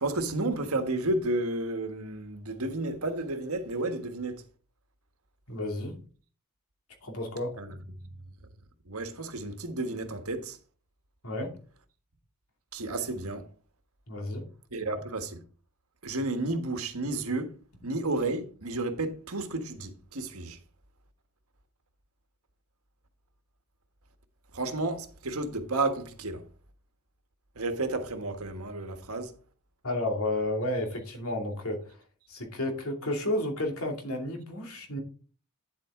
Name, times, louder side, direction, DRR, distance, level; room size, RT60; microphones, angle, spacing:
voice 1, 0.0-4.4 7.6-7.7 8.0-8.2 8.9-10.6 12.7-13.5 14.7-15.4 16.0-17.5 17.8-20.6 24.5-26.4 27.5-29.3, right 2 dB, 85° right, 1.5 m, -32 dB
voice 2, 5.5-6.0 7.0-7.6 11.2-11.6 14.1-14.5 29.8-31.8 32.3-35.0, left 1 dB, 80° left, 2.6 m, -31 dB
9.9 x 7.7 x 3.7 m
head